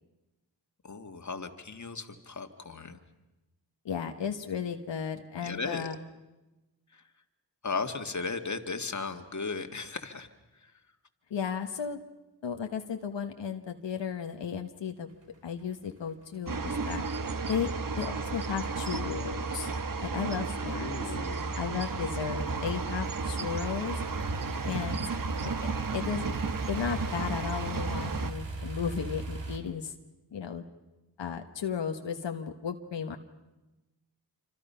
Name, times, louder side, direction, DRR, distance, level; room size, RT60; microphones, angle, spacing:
voice 1, 0.8-3.0 5.4-5.9 6.9-7.0 7.6-10.3 10.6-10.7 20.7-21.6, left 4 dB, 40° left, 6 dB, 1.9 m, -36 dB
voice 2, 3.8-6.0 11.3-12.0 12.4-15.1 15.4-17.0 17.5-19.7 20.0-20.9 21.6-24.0 24.6-25.0 25.4-26.3 26.7-29.9 30.3-30.6 31.2-33.2, left 7 dB, 85° left, 5 dB, 1.3 m, -34 dB
sound 1, 15.1-29.6, right 3 dB, 80° right, 2.8 m, -41 dB
sound 2, 16.5-28.3, right 4 dB, 50° right, 1.2 m, -33 dB
27.0 x 25.5 x 5.7 m, 1.0 s
cardioid pair, 55°, 43 cm